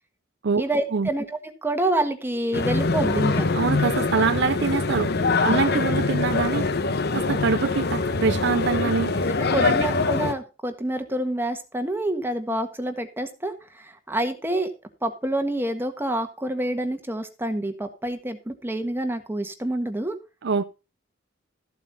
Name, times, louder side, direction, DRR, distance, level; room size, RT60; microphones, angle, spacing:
voice 1, 0.6-3.4 5.2-5.6 9.5-14.7 15.0-20.2, right 1 dB, 10° right, 1.5 m, -27 dB
sound 1, 2.5-10.3, left 3 dB, 55° left, 1.0 m, -24 dB
voice 2, 3.5-5.1 5.4-6.7 7.1-9.2 9.6-9.7 20.4-20.6, right 5 dB, 60° right, 0.6 m, -24 dB
14.0 x 8.2 x 4.1 m
head